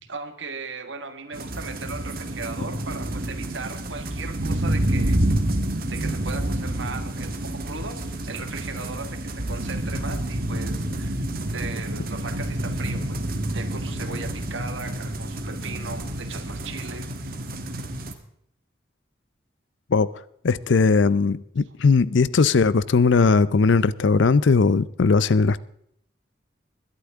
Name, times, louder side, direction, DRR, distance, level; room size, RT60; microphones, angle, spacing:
voice 1, 0.0-5.2 5.9-11.2 11.5-13.2 13.5-17.1, right 4 dB, 75° right, 1.6 m, -37 dB
sound 1, 1.3-18.1, right 1 dB, 50° right, 1.4 m, -28 dB
voice 2, 20.4-25.6, left 4 dB, 75° left, 0.5 m, -19 dB
21.5 x 11.5 x 3.6 m
head